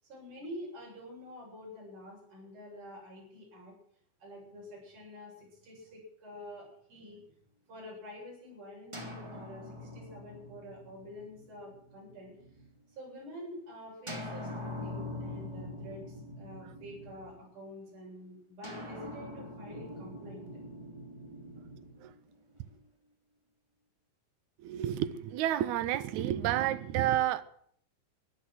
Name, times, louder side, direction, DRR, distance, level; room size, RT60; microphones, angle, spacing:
voice 1, 0.0-3.7 4.2-7.2 7.7-12.3 12.9-20.4, left 1 dB, 55° right, 9.3 m, -48 dB
sound 1, 8.9-12.7 14.1-17.6 18.6-22.8, left 1 dB, 10° right, 2.3 m, -44 dB
voice 2, 24.6-27.4, right 12 dB, 80° right, 1.7 m, -30 dB
15.0 x 11.5 x 7.8 m
omnidirectional pair, 4.3 m